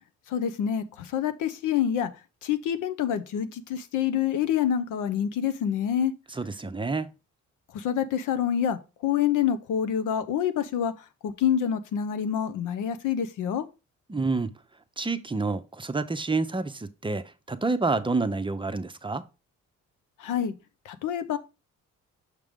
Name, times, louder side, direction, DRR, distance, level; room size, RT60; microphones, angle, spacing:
voice 1, 0.3-2.1 2.4-6.1 7.7-10.9 11.2-13.7 20.2-20.5 20.9-21.4, left 9 dB, 85° left, 0.8 m, -27 dB
voice 2, 6.3-7.1 14.1-14.5 15.0-19.3, right 3 dB, 15° right, 0.6 m, -28 dB
6.6 x 4.9 x 3.6 m
cardioid pair, 90°, 30 cm